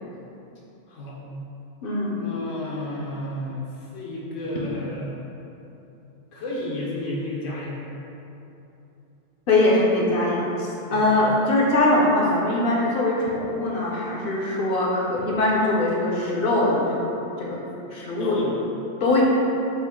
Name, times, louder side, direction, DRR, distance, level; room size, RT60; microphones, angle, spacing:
voice 1, 0.9-1.2 2.2-5.2 6.3-7.8 10.9-11.1 18.2-18.5, left 1 dB, 85° left, -4 dB, 1.2 m, -31 dB
voice 2, 1.8-2.2 9.5-17.1 17.4-17.6 17.9-18.4 19.0-19.2, left 2 dB, 55° left, -3 dB, 0.7 m, -22 dB
5.3 x 2.4 x 3.5 m, 2.9 s
omnidirectional pair, 1.3 m